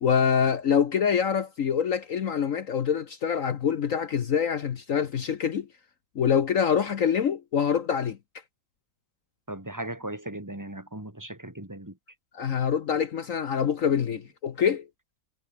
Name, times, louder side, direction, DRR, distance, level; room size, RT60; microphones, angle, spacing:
voice 1, 0.0-5.7 6.1-8.2 12.3-14.9, left 7 dB, 55° left, 1.3 m, -25 dB
voice 2, 9.5-12.0, right 1 dB, 10° right, 2.7 m, -37 dB
omnidirectional pair, 1.7 m